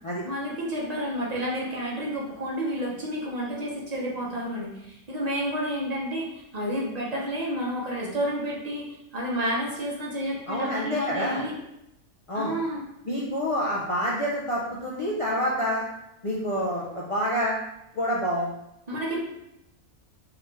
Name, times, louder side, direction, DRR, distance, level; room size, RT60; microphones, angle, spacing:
voice 1, 0.2-8.8 9.1-11.6 12.3-12.8 18.9-19.2, equal, 35° right, -4 dB, 0.8 m, -30 dB
voice 2, 10.5-11.4 12.3-12.5 13.1-15.8 16.2-17.7 17.9-18.6, equal, 55° left, -5 dB, 0.3 m, -27 dB
3.8 x 3.1 x 3.1 m, 0.85 s
omnidirectional pair, 1.5 m